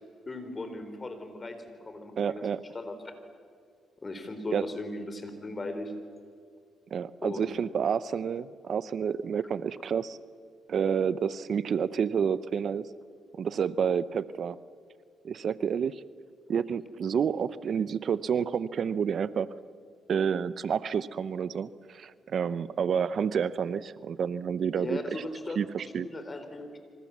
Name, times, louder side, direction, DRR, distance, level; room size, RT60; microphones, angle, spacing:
voice 1, 0.3-2.4 2.7-3.0 4.0-5.9 7.2-7.6 24.7-26.7, left 2 dB, 30° left, 8 dB, 4.3 m, -38 dB
voice 2, 2.2-2.6 4.5-4.6 6.9-10.2 10.7-12.9 13.4-14.6 15.2-16.0 16.5-19.5 20.1-25.2 25.6-26.1, right 7 dB, 55° right, 16 dB, 0.7 m, -29 dB
26.5 x 26.0 x 7.4 m, 2.2 s
cardioid pair, 90°, 0 cm